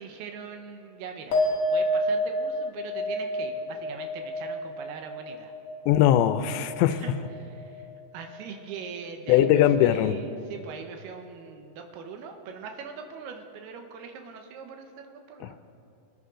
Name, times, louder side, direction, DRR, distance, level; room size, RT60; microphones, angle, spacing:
voice 1, 0.0-1.4 1.7-5.5 6.9-7.9 8.1-15.6, right 6 dB, 75° right, 4 dB, 2.8 m, -41 dB
sound 1, 1.3-8.0 8.3-8.9, equal, 50° left, 2.5 m, -30 dB
voice 2, 5.9-7.0 9.3-10.2 15.4-15.5, left 11 dB, 90° left, 12 dB, 2.8 m, -21 dB
25.5 x 10.0 x 3.8 m, 2.8 s
omnidirectional pair, 5.0 m